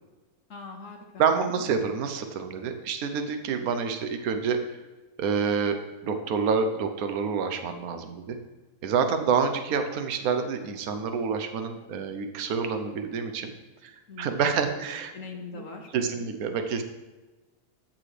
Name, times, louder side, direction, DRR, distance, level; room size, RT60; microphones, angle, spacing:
voice 1, 0.5-1.6 14.1-14.8 15.1-15.9 16.1-16.3, left 3 dB, 55° left, 2 dB, 1.7 m, -42 dB
voice 2, 1.2-4.6 5.2-8.4 8.8-13.5 13.8-13.9 14.2-15.1 15.5-15.6 15.9-16.8, right 6 dB, 70° right, 7 dB, 1.3 m, -27 dB
13.0 x 6.7 x 3.3 m, 1.2 s
omnidirectional pair, 1.6 m